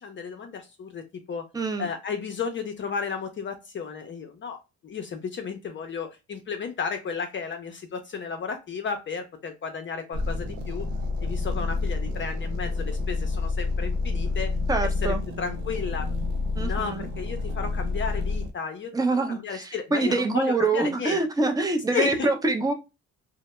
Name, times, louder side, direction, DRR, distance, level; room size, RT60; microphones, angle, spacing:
voice 1, 0.0-1.5 1.8-10.9 11.2-14.5 14.8-16.1 16.6-21.2 21.9-22.3, left 6 dB, 40° left, 0.5 m, -33 dB
voice 2, 1.5-1.9 14.7-15.2 16.6-17.1 18.9-22.7, right 3 dB, 10° right, 0.5 m, -25 dB
sound 1, 10.1-18.5, left 3 dB, 85° right, 0.6 m, -28 dB
2.1 x 2.0 x 2.9 m
cardioid pair, 90°, 30 cm